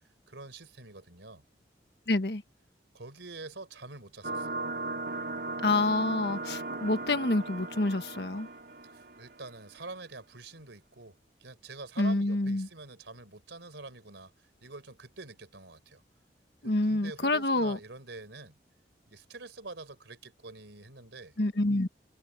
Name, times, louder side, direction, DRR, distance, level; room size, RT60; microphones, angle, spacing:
voice 1, 0.3-1.4 2.9-4.6 8.8-16.0 16.6-18.6 19.1-21.3, right 3 dB, 90° right, 4.1 m, -46 dB
voice 2, 2.1-2.4 5.6-8.5 12.0-12.7 16.6-17.8 21.4-21.9, left 2 dB, 65° left, 1.4 m, -27 dB
sound 1, 4.2-9.5, right 2 dB, 60° right, 4.0 m, -37 dB
head